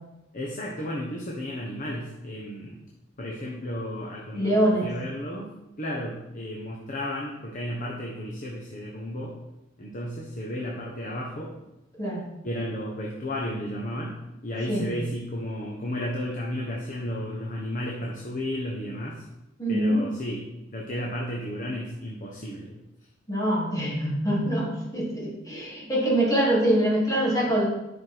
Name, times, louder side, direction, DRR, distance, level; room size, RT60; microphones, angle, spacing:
voice 1, 0.3-2.8 3.2-5.5 5.8-9.3 9.8-11.5 12.4-14.1 14.4-19.2 19.7-20.4 20.7-22.7, equal, 45° left, -3 dB, 1.3 m, -33 dB
voice 2, 4.3-4.9 12.0-12.2 14.7-14.9 19.6-20.0 23.3-27.7, right 1 dB, 20° left, -6 dB, 3.2 m, -24 dB
11.0 x 6.0 x 4.8 m, 0.94 s
head